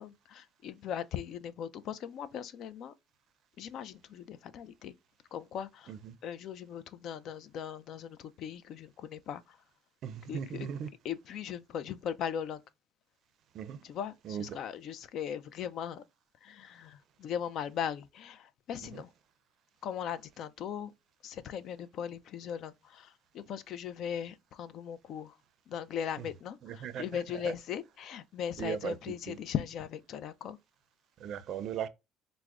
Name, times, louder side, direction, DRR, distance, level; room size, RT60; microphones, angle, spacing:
voice 1, 0.0-2.9 3.6-4.9 5.3-5.9 6.2-9.6 10.3-10.7 11.0-12.6 13.8-16.0 16.4-19.1 19.8-20.9 21.2-25.4 25.7-30.6, left 8 dB, 60° left, 0.4 m, -39 dB
voice 2, 10.0-10.9 13.5-13.8 14.2-14.6 18.9-19.0 26.2-26.3 26.6-27.0 27.3-27.5 28.6-29.0 29.3-29.4 31.2-31.9, right 8 dB, 60° right, 0.4 m, -38 dB
4.5 x 2.1 x 2.4 m
cardioid pair, 105°, 0 cm